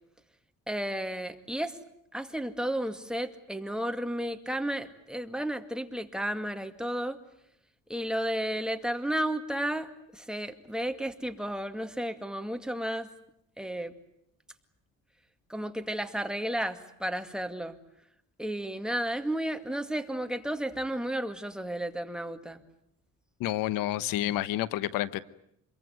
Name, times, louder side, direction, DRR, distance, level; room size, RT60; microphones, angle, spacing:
voice 1, 0.7-1.8 2.1-7.2 7.9-13.1 13.6-13.9 15.5-17.8 18.4-22.6, right 1 dB, ahead, 7 dB, 2.2 m, -33 dB
voice 2, 23.4-25.2, left 14 dB, 85° left, 17 dB, 1.0 m, -29 dB
26.5 x 22.5 x 9.4 m, 0.74 s
cardioid pair, 95°, 33 cm